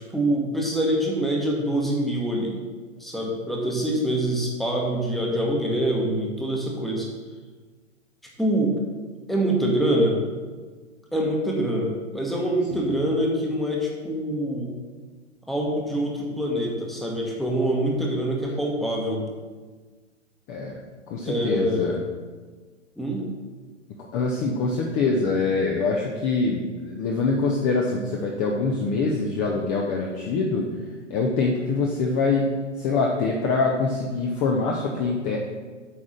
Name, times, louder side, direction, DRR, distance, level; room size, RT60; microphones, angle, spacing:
voice 1, 0.1-2.6 3.0-7.1 8.4-8.8 9.3-10.2 11.1-14.7 15.5-19.2 21.2-22.0 23.0-23.2, right 1 dB, ahead, -2 dB, 1.0 m, -25 dB
voice 2, 20.5-20.8 21.1-22.0 24.1-30.7 31.1-35.4, left 3 dB, 20° left, -1 dB, 0.6 m, -24 dB
8.4 x 3.6 x 6.4 m, 1.4 s
figure-of-eight pair, 120°, 37 cm